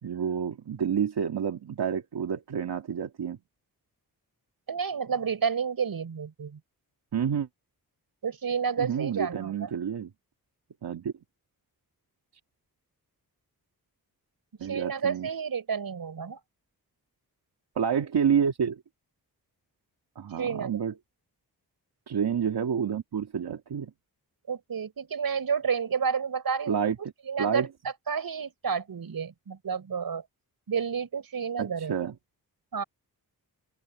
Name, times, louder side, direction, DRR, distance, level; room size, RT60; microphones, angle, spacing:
voice 1, 0.0-3.4 7.1-7.5 8.8-10.1 10.8-11.1 14.6-15.3 17.8-18.8 20.2-20.9 22.1-23.9 26.7-27.0 27.4-27.7 31.6-32.1, right 7 dB, 85° right, 2.3 m, -29 dB
voice 2, 4.7-6.6 8.2-9.7 14.6-16.4 20.4-20.8 24.5-26.8 27.3-27.7 28.1-30.2 30.7-31.9 32.7-32.8, right 6 dB, 65° right, 5.3 m, -30 dB
wide cardioid pair, 150°, 38 cm